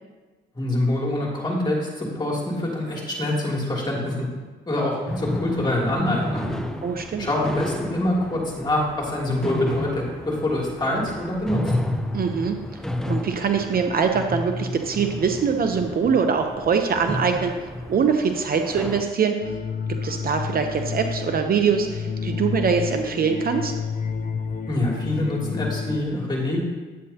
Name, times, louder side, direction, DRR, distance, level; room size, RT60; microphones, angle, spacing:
voice 1, 0.5-4.3 4.7-6.5 7.2-11.6 24.7-26.6, left 1 dB, 20° left, -4 dB, 2.9 m, -25 dB
sound 1, 5.1-19.0, left 1 dB, 5° left, 0.7 m, -31 dB
voice 2, 6.8-7.3 12.1-12.6 13.1-17.6 17.9-19.5 19.9-23.7, right 6 dB, 50° right, 5 dB, 0.8 m, -23 dB
sound 2, 19.4-26.0, left 6 dB, 45° left, 0.6 m, -30 dB
9.6 x 8.7 x 2.9 m, 1.3 s
cardioid pair, 90°, 20 cm